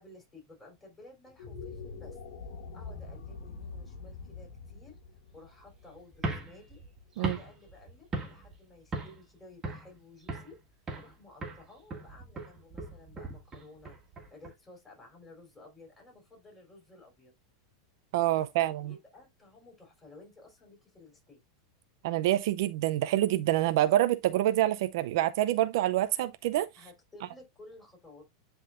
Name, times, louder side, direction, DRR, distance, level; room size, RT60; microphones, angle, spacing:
voice 1, 0.0-2.2 2.7-5.0 5.3-6.8 7.2-10.6 11.0-14.0 14.3-17.3 18.3-21.4 26.8-28.3, left 2 dB, 10° left, 3.7 m, -54 dB
sound 1, 1.2-7.6, left 4 dB, 75° left, 2.0 m, -45 dB
sound 2, 6.1-8.6 8.9-9.3 9.6-10.6 10.9-11.2 11.4-14.5, right 2 dB, 20° right, 1.8 m, -38 dB
voice 2, 18.1-18.9 22.0-26.7, right 14 dB, 65° right, 0.5 m, -26 dB
10.0 x 3.8 x 2.5 m
supercardioid pair, 150°, 2 cm